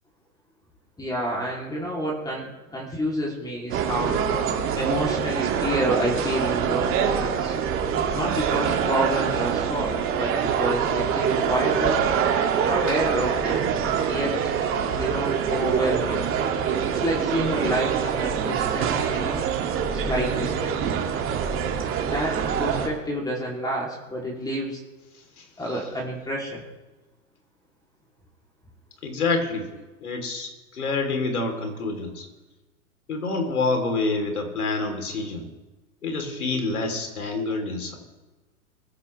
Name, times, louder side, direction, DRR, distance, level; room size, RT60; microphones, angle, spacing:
voice 1, 1.0-4.2 4.7-7.5 8.1-12.0 12.6-13.7 14.1-14.4 14.9-16.3 16.9-19.4 19.9-20.9 22.0-24.8 25.6-26.6, right 1 dB, 10° left, -2 dB, 3.1 m, -29 dB
sound 1, 3.7-22.9, right 7 dB, 30° right, 2.4 m, -25 dB
voice 2, 29.0-29.7 30.0-32.3 33.1-35.5 36.0-38.0, left 3 dB, 75° left, 4 dB, 3.6 m, -27 dB
24.0 x 14.5 x 3.4 m, 1.2 s
hypercardioid pair, 110°, 44 cm